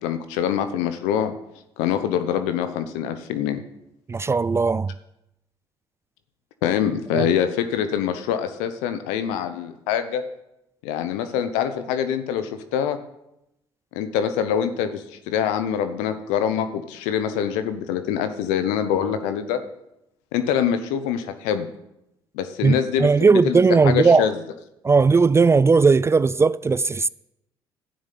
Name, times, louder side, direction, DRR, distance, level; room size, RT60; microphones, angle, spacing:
voice 1, 0.0-1.3 1.8-3.6 6.6-10.2 10.8-13.0 13.9-19.6 20.3-21.7 22.3-24.3, left 9 dB, 85° left, 0.8 m, -24 dB
voice 2, 4.1-4.9 7.1-7.3 22.6-24.3 24.8-27.1, right 4 dB, 25° right, 0.3 m, -17 dB
11.0 x 6.4 x 8.5 m
supercardioid pair, 60°, 11 cm